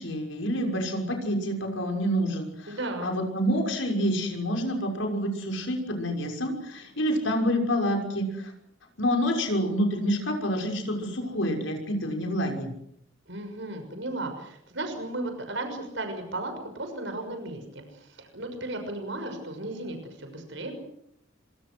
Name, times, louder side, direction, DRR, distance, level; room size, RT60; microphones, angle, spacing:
voice 1, 0.0-2.5 3.0-8.5 9.0-12.7, equal, 75° left, 3 dB, 6.1 m, -27 dB
voice 2, 2.7-3.1 13.3-20.7, right 2 dB, 70° right, 6 dB, 6.3 m, -35 dB
27.5 x 26.0 x 6.3 m, 0.74 s
head